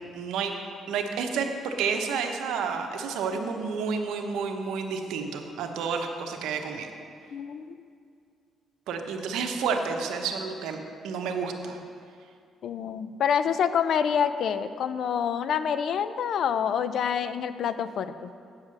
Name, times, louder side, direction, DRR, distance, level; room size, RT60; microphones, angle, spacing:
voice 1, 0.1-0.5 0.9-6.9 8.9-11.8, right 5 dB, 90° right, 3 dB, 0.9 m, -30 dB
voice 2, 7.3-7.7 12.6-18.3, left 7 dB, 65° left, 12 dB, 0.5 m, -27 dB
8.4 x 7.4 x 6.4 m, 2.3 s
cardioid pair, 90°, 0 cm